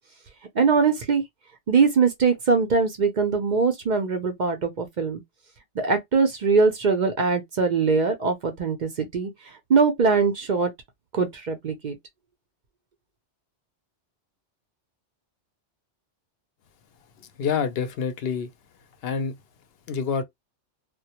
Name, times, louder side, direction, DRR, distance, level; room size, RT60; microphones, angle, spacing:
voice 1, 0.6-1.2 1.7-5.2 5.8-10.7 11.1-12.0, right 4 dB, 55° right, 0.5 m, -22 dB
voice 2, 17.4-18.5 19.0-19.4 19.9-20.2, left 6 dB, 65° left, 0.7 m, -26 dB
2.1 x 2.1 x 2.8 m
omnidirectional pair, 1.2 m